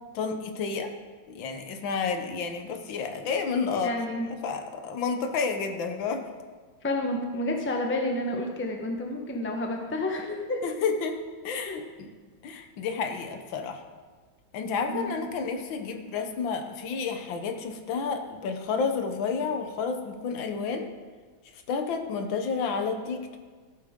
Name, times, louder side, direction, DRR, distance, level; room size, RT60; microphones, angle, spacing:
voice 1, 0.1-0.9 1.3-6.3 10.6-12.1 12.4-13.8 14.5-20.9 21.7-23.4, left 5 dB, 75° left, 6 dB, 1.6 m, -30 dB
voice 2, 3.7-4.3 6.8-10.6 11.7-11.8 14.8-15.1, left 1 dB, 10° left, 2 dB, 0.6 m, -30 dB
14.0 x 8.6 x 3.7 m, 1.4 s
omnidirectional pair, 2.2 m